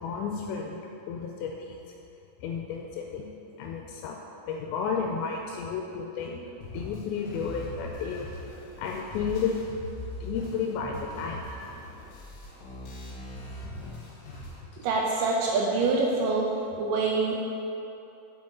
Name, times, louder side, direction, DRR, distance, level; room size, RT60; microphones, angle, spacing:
voice 1, 0.0-0.8 1.1-1.8 2.4-3.3 3.6-4.2 4.5-6.4 6.7-8.3 8.8-9.5 10.2-11.4 14.7-14.8, left 6 dB, 85° left, 1 dB, 2.4 m, -32 dB
sound 1, 6.6-14.6, equal, 65° left, 2.0 m, -41 dB
voice 2, 14.8-16.5 16.8-17.5, right 3 dB, 80° right, -2 dB, 2.1 m, -25 dB
7.9 x 6.5 x 3.7 m, 2.9 s
omnidirectional pair, 4.3 m